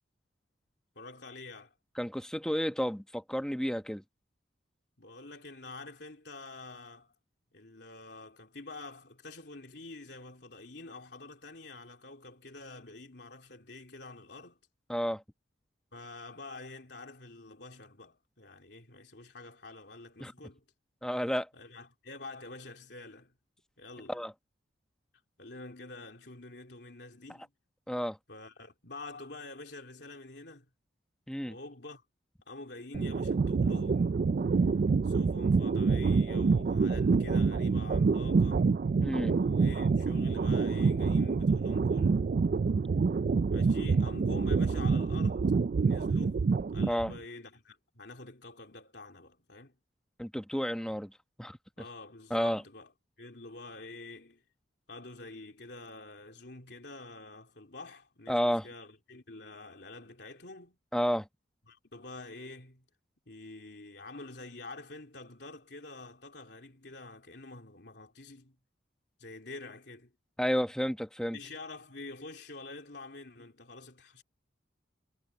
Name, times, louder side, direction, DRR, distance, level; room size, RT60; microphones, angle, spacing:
voice 1, 1.0-1.7 5.0-7.1 7.5-14.6 15.9-20.6 21.5-23.3 23.8-24.2 25.4-27.5 28.3-30.7 31.4-32.0 32.5-34.2 35.0-38.7 39.3-42.3 43.5-45.5 45.8-49.8 51.8-52.9 53.2-54.4 54.9-60.8 61.7-62.8 63.3-68.6 69.2-70.1 71.3-74.2, left 2 dB, 60° left, 3.5 m, -47 dB
voice 2, 2.0-4.0 14.9-15.2 20.2-20.3 21.0-21.5 24.1-24.3 27.9-28.2 31.3-31.5 39.0-39.4 46.9-47.1 50.2-51.1 51.4-51.6 52.3-52.6 58.3-58.7 60.9-61.3 70.4-71.4, equal, 5° left, 1.0 m, -31 dB
sound 1, 32.9-47.2, right 4 dB, 45° right, 0.3 m, -27 dB
head